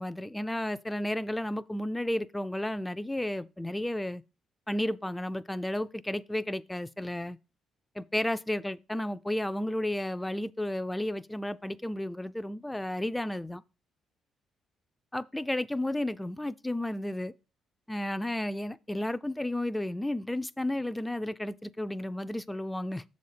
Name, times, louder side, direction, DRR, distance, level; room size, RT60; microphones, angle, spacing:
voice 1, 0.0-4.2 4.7-7.4 8.0-13.6 15.1-17.3 17.9-23.0, left 1 dB, 10° left, 0.3 m, -32 dB
6.9 x 4.1 x 6.5 m
cardioid pair, 90°, 0 cm